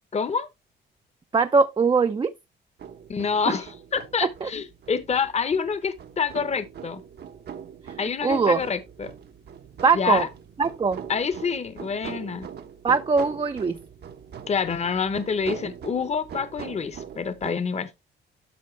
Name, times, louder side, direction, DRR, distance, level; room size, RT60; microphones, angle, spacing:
voice 1, 0.1-0.5 3.1-7.0 8.0-9.1 9.9-10.3 11.1-12.5 14.5-17.9, left 6 dB, 35° left, 0.9 m, -27 dB
voice 2, 1.3-2.3 3.5-3.6 4.2-4.5 7.8-7.9 8.2-8.6 9.8-10.3 10.6-11.0 12.8-13.8, right 4 dB, 25° right, 0.5 m, -21 dB
sound 1, 2.8-17.5, right 8 dB, 55° right, 0.9 m, -41 dB
12.0 x 4.2 x 3.2 m
cardioid pair, 90°, 20 cm